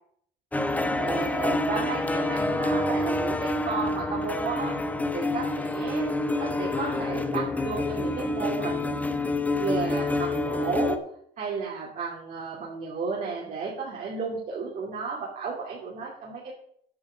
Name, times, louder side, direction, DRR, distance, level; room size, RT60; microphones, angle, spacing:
sound 1, 0.5-11.0, left 2 dB, 10° left, 0.9 m, -27 dB
voice 1, 0.8-4.8 5.1-6.1 6.4-9.1 9.5-11.0 11.4-16.5, right 5 dB, 50° right, -4 dB, 2.9 m, -33 dB
9.4 x 6.4 x 6.8 m, 0.65 s
cardioid pair, 110°, 17 cm